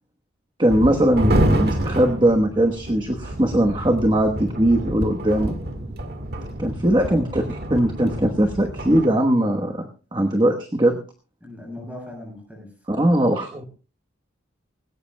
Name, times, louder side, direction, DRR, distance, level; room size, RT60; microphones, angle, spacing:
voice 1, 0.6-5.6 6.6-11.0 12.9-13.6, right 1 dB, 25° right, 4 dB, 1.1 m, -20 dB
sound 1, 0.7-9.1, right 1 dB, 50° right, 1.8 m, -27 dB
voice 2, 6.9-7.2 11.4-13.2, left 1 dB, 10° right, 1 dB, 7.0 m, -39 dB
19.5 x 17.5 x 2.2 m, 0.35 s
head